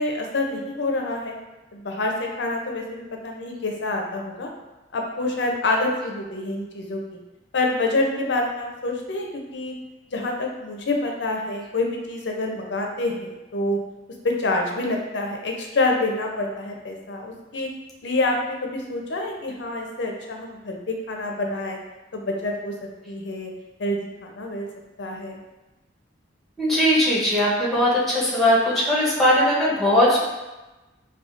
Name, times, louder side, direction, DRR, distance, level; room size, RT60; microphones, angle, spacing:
voice 1, 0.0-1.3 1.7-4.5 4.9-7.0 7.5-9.7 10.1-13.8 14.2-17.7 18.0-21.8 22.1-22.7 23.1-23.5 23.8-24.7 25.0-25.4, left 2 dB, 65° left, 1 dB, 0.6 m, -27 dB
voice 2, 26.6-30.2, left 1 dB, ahead, -7 dB, 0.9 m, -19 dB
4.9 x 2.3 x 2.5 m, 1.1 s
head